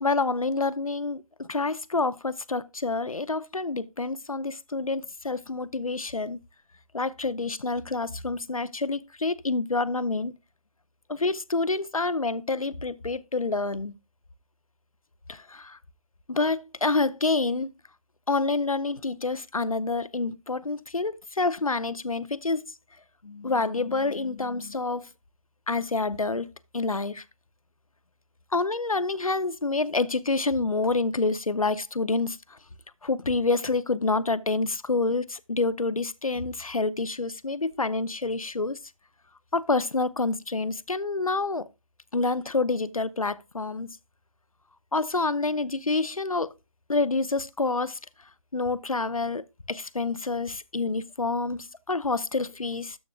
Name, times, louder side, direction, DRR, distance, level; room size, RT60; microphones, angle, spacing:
voice 1, 0.0-6.4 6.9-10.3 11.1-13.9 15.3-15.8 16.3-17.7 18.3-22.7 23.2-25.1 25.7-26.5 26.7-27.2 28.5-32.6 33.0-38.8 39.5-41.7 42.1-43.9 44.9-46.5 46.9-48.0 48.5-49.4 49.7-53.0, left 3 dB, 85° left, 0.6 m, -27 dB
12.5 x 5.9 x 2.3 m
figure-of-eight pair, 150°, 17 cm